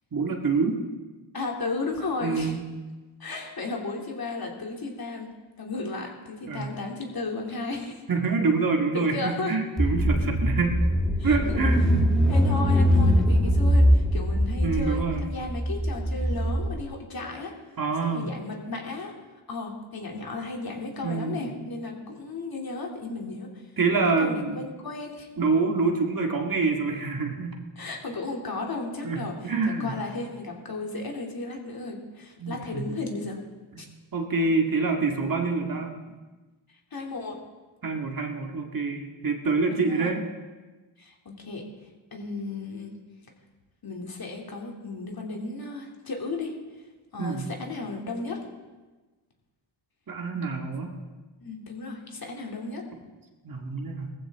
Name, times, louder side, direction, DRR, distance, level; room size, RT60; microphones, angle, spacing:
voice 1, 0.1-0.8 2.2-2.6 6.5-6.7 8.1-10.8 11.2-12.0 14.6-15.3 17.8-18.3 21.0-21.4 23.8-24.6 25.4-27.5 29.0-30.0 32.4-32.9 33.8-35.9 37.8-40.2 47.2-47.5 50.1-50.9 53.4-54.1, right 4 dB, 45° right, 2 dB, 2.0 m, -26 dB
voice 2, 1.3-2.5 3.2-5.3 5.6-8.0 8.9-9.5 11.2-11.4 12.3-17.5 18.0-19.1 19.5-23.7 24.2-25.3 27.8-29.3 29.7-33.4 33.8-33.9 36.9-37.4 39.5-40.1 41.0-41.6 42.1-42.9 43.8-46.5 47.1-48.4 51.4-52.8, left 3 dB, 45° left, 0 dB, 2.9 m, -34 dB
Car / Engine, 9.8-16.8, equal, ahead, 1.5 m, -22 dB
18.5 x 14.5 x 3.7 m, 1.2 s
cardioid pair, 80°, 48 cm